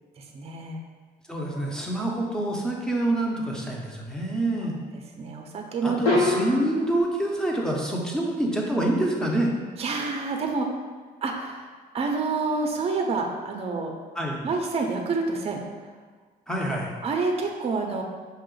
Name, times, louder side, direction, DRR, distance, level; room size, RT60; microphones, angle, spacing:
voice 1, 0.3-0.8 1.8-2.0 4.6-4.7 5.2-6.2 9.8-10.7 11.2-11.7 11.9-13.9 14.4-15.6 17.0-18.0, right 4 dB, 35° right, 3 dB, 0.6 m, -28 dB
voice 2, 1.3-4.8 5.8-9.5 14.2-14.4 16.5-16.9, right 1 dB, 5° left, -2 dB, 0.7 m, -26 dB
sound 1, 1.5-2.1 6.0-7.0, left 2 dB, 80° left, 0.9 m, -26 dB
5.6 x 2.5 x 3.8 m, 1.5 s
cardioid pair, 110°, 17 cm